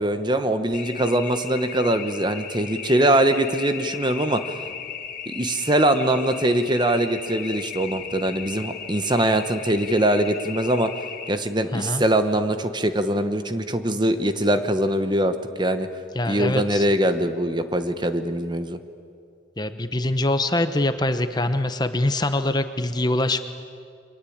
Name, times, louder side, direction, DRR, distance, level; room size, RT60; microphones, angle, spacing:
voice 1, 0.0-4.4 5.3-10.9 11.3-15.9 16.3-18.8, right 1 dB, 25° right, 9 dB, 1.1 m, -22 dB
sound 1, 0.7-11.3, left 7 dB, 45° left, 2.0 m, -36 dB
voice 2, 11.7-12.0 16.1-16.8 19.6-23.4, left 1 dB, 20° left, 9 dB, 0.9 m, -24 dB
28.5 x 23.5 x 8.7 m, 2.4 s
head